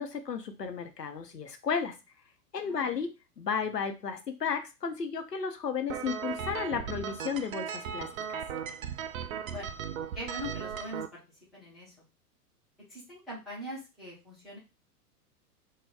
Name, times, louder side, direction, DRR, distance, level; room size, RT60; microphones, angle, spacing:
voice 1, 0.0-1.9 2.5-8.4, left 6 dB, 85° left, 6 dB, 0.8 m, -33 dB
voice 2, 2.6-3.0 9.5-9.8 10.1-11.2 11.5-11.9 12.9-14.6, equal, ahead, -9 dB, 0.4 m, -42 dB
sound 1, 5.9-11.1, right 8 dB, 60° right, 0.5 m, -37 dB
3.5 x 2.2 x 3.4 m, 0.28 s
figure-of-eight pair, 105°, 47 cm